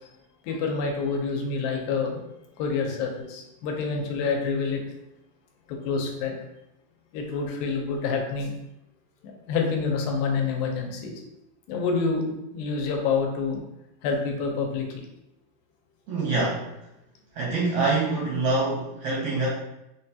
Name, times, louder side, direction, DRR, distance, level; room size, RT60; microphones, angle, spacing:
voice 1, 0.4-2.2 2.6-4.8 5.7-6.4 7.1-8.5 9.5-11.2 11.7-13.6 14.0-15.0, left 4 dB, 85° left, 2 dB, 2.4 m, -27 dB
voice 2, 16.1-16.7 17.3-19.5, right 3 dB, 80° right, -4 dB, 1.5 m, -25 dB
5.5 x 2.2 x 2.7 m, 0.88 s
omnidirectional pair, 4.0 m